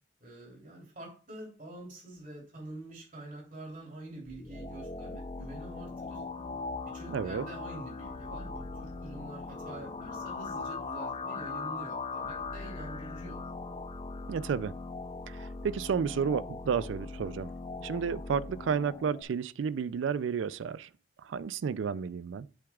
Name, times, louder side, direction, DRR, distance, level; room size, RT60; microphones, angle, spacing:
voice 1, 0.2-6.2 6.8-13.4, right 2 dB, 45° right, 3.2 m, -46 dB
sound 1, 4.3-19.2, left 3 dB, 30° left, 0.4 m, -40 dB
voice 2, 7.1-7.4 14.3-14.7 15.3-17.5 17.8-20.9 21.2-22.5, right 6 dB, 90° right, 0.4 m, -32 dB
7.9 x 7.1 x 2.3 m
head